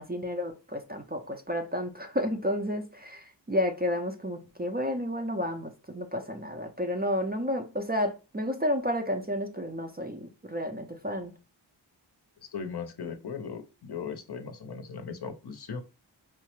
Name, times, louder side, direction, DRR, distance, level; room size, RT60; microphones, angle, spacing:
voice 1, 0.0-11.3, left 1 dB, 20° right, 0.4 m, -31 dB
voice 2, 12.5-15.8, left 6 dB, 55° left, 0.6 m, -38 dB
4.6 x 2.0 x 2.9 m
wide cardioid pair, 80°, 47 cm